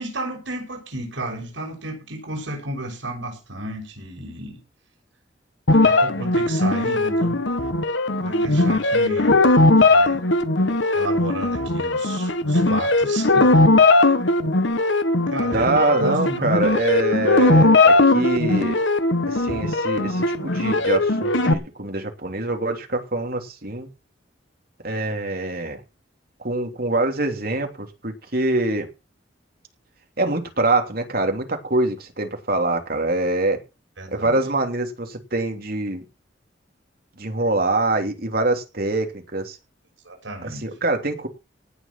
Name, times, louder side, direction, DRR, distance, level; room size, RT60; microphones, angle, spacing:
voice 1, 0.0-4.6 5.7-7.4 8.2-10.2 10.9-13.6 15.3-16.5 34.0-34.4 40.0-40.7, right 1 dB, 80° right, 2 dB, 6.7 m, -32 dB
sound 1, 5.7-21.5, left 2 dB, 75° left, 1.5 m, -19 dB
voice 2, 15.5-18.8 19.3-23.9 24.8-25.8 26.4-28.9 30.2-33.6 34.1-36.0 37.2-39.6 40.4-41.3, right 2 dB, 50° right, 5 dB, 3.1 m, -24 dB
18.5 x 6.6 x 6.1 m, 0.29 s
head